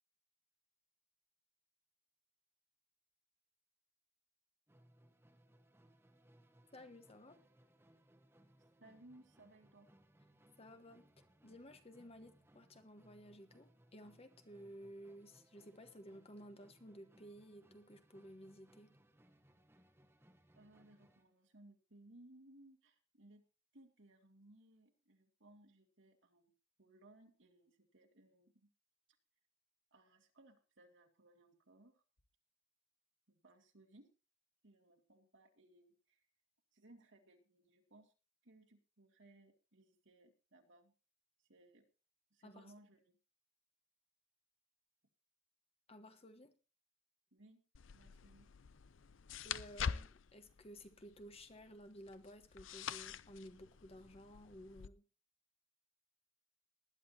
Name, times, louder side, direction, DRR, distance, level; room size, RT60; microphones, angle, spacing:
Musical instrument, 4.7-21.3, right 1 dB, 10° right, 1.3 m, -68 dB
voice 1, 6.7-7.4 10.6-11.1 11.4-19.0 42.4-42.7 45.9-46.5 49.4-55.0, equal, 30° left, 1.2 m, -55 dB
voice 2, 8.8-9.9 20.6-23.4 23.7-26.5 26.8-28.7 29.9-32.0 33.3-34.1 34.6-36.2 36.7-38.1 38.4-40.9 41.5-41.9 42.3-43.2 47.3-47.6 47.9-48.5, right 1 dB, 65° right, 2.3 m, -64 dB
sound 1, 47.7-54.9, left 7 dB, 70° left, 0.5 m, -46 dB
19.5 x 11.0 x 2.8 m
head